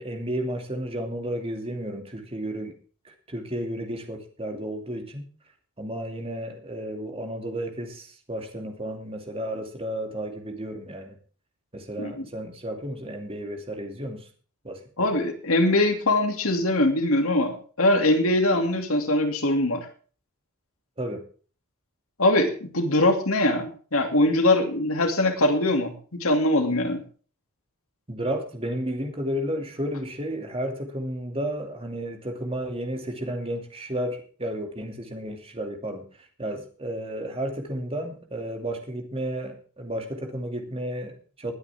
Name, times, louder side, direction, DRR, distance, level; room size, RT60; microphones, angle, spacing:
voice 1, 0.0-2.7 3.0-5.2 5.8-11.2 11.7-14.3 14.6-15.1 21.0-21.2 28.1-41.5, right 1 dB, 25° right, 3 dB, 2.6 m, -32 dB
voice 2, 15.0-19.9 22.2-27.0, left 1 dB, 70° left, 5 dB, 2.7 m, -22 dB
21.0 x 9.7 x 3.6 m, 0.40 s
head